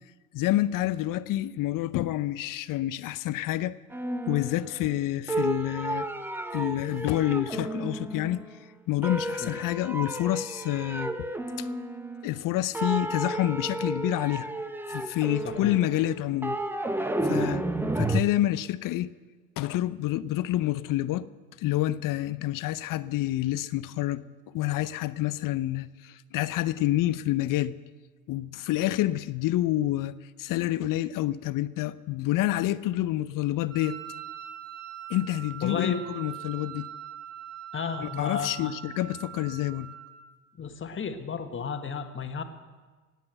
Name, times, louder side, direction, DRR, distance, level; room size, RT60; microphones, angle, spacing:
voice 1, 0.3-3.8 4.3-6.1 6.5-8.4 8.9-11.1 11.6-11.7 12.2-14.5 14.9-16.6 17.2-17.6 18.0-19.1 19.6-21.3 21.6-27.8 28.3-34.0 35.1-36.9 38.0-39.9, left 14 dB, 45° left, 0.7 m, -28 dB
sound 1, 3.9-5.0 5.3-8.6 9.0-12.5 12.7-18.2, right 1 dB, 5° right, 0.8 m, -32 dB
voice 2, 15.4-15.8 17.3-17.6 35.6-36.0 37.7-38.8 40.6-42.4, left 6 dB, 25° left, 1.5 m, -33 dB
Wind instrument woodwind instrument, 33.7-40.3, right 10 dB, 60° right, 2.6 m, -42 dB
18.5 x 8.4 x 7.9 m
hypercardioid pair, 75°, 48 cm